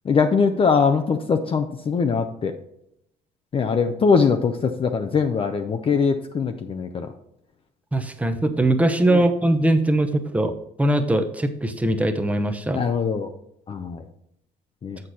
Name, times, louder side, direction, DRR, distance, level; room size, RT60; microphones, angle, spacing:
voice 1, 0.1-2.5 3.5-7.1 9.1-9.2 12.7-13.3 13.7-14.0 14.8-15.0, left 5 dB, 35° left, 6 dB, 0.6 m, -22 dB
voice 2, 7.9-12.8, right 1 dB, 10° right, 6 dB, 0.8 m, -21 dB
7.5 x 6.6 x 4.1 m, 0.78 s
cardioid pair, 110°, 17 cm